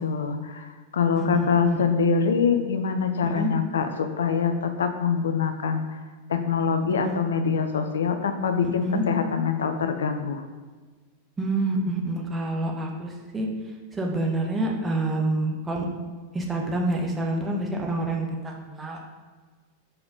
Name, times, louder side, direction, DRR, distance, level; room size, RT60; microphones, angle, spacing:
voice 1, 0.0-6.0 6.3-10.4, left 6 dB, 65° left, 7 dB, 0.5 m, -24 dB
voice 2, 1.1-1.8 3.3-3.5 7.0-7.2 8.6-9.1 11.4-13.5 13.9-15.9 16.3-19.0, right 2 dB, 15° right, 0 dB, 1.2 m, -27 dB
4.9 x 4.7 x 4.9 m, 1.4 s
figure-of-eight pair, 90°, 0 cm